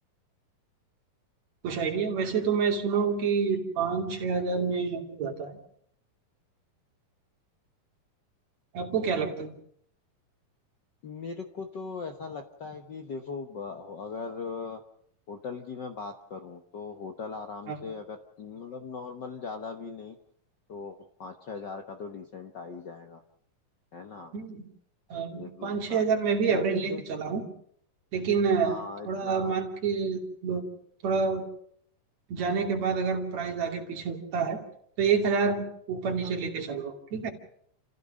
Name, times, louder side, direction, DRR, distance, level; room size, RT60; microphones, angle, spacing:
voice 1, 1.6-5.6 8.7-9.5 17.7-17.8 24.3-24.7 25.1-27.5 28.1-30.7 31.0-31.5 32.3-34.6 35.0-37.3, right 5 dB, 55° right, 2 dB, 3.8 m, -28 dB
voice 2, 11.0-14.8 15.3-20.2 20.7-23.2 23.9-24.3 25.3-26.0 26.4-27.0 28.6-29.6 36.2-36.3, left 4 dB, 85° left, 6 dB, 0.9 m, -39 dB
30.0 x 15.5 x 6.4 m, 0.67 s
omnidirectional pair, 3.8 m